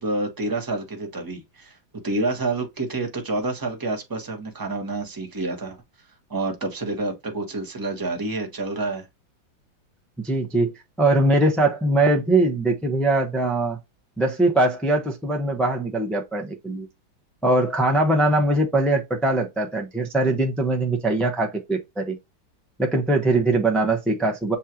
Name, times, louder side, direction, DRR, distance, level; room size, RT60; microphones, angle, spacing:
voice 1, 0.0-1.8 2.0-5.8 6.3-9.1, right 2 dB, 15° right, 0.9 m, -28 dB
voice 2, 10.2-10.7 11.0-13.8 14.2-16.9 17.4-22.2 22.8-24.6, right 2 dB, ahead, 0.4 m, -21 dB
7.3 x 2.5 x 2.9 m
omnidirectional pair, 2.0 m